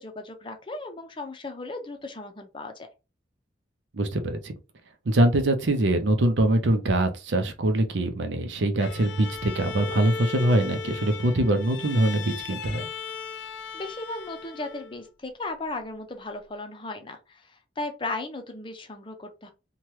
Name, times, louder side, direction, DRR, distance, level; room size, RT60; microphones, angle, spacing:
voice 1, 0.0-2.9 13.7-19.5, left 2 dB, 25° left, 0.5 m, -36 dB
voice 2, 3.9-4.5 5.1-12.8, right 1 dB, 85° right, 0.6 m, -23 dB
Bowed string instrument, 8.8-15.1, left 6 dB, 90° left, 0.4 m, -37 dB
2.9 x 2.2 x 3.1 m
head